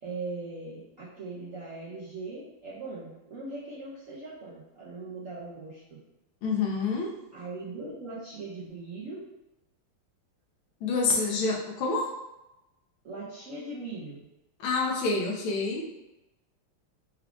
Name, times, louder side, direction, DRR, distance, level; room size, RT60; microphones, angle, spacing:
voice 1, 0.0-6.0 7.3-9.2 13.0-14.2, right 3 dB, 60° right, -8 dB, 0.8 m, -40 dB
voice 2, 6.4-7.1 10.8-12.1 14.6-15.9, left 4 dB, 75° left, -1 dB, 1.5 m, -27 dB
4.6 x 2.4 x 3.6 m, 0.97 s
omnidirectional pair, 2.4 m